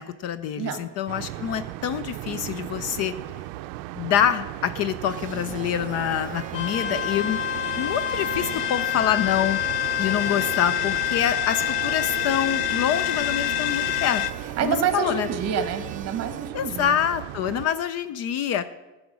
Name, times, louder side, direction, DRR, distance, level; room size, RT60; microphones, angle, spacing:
voice 1, 0.0-3.1 4.0-7.4 7.8-9.6 10.0-14.2 14.6-15.3 16.5-18.6, left 9 dB, 45° left, 13 dB, 0.4 m, -26 dB
voice 2, 0.6-0.9 14.4-17.0, right 8 dB, 40° right, 9 dB, 1.1 m, -28 dB
sound 1, 1.1-17.7, right 16 dB, 80° right, 0.5 m, -37 dB
sound 2, 5.1-16.5, right 7 dB, 20° right, 0.5 m, -40 dB
sound 3, 6.5-14.3, left 14 dB, 85° left, 0.7 m, -26 dB
13.5 x 5.0 x 6.1 m, 1.1 s
cardioid pair, 150°, 37 cm